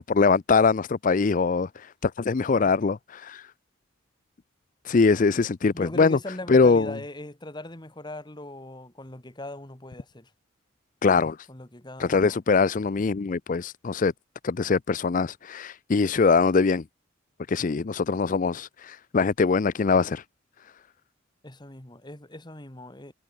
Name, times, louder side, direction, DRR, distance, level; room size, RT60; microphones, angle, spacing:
voice 1, 0.0-3.5 4.8-6.2 6.5-6.9 11.0-11.4 12.0-14.1 14.4-16.8 17.5-20.2, left 4 dB, 40° left, 0.4 m, -22 dB
voice 2, 5.7-10.3 11.5-12.4 21.4-23.1, left 1 dB, 20° left, 1.9 m, -40 dB
head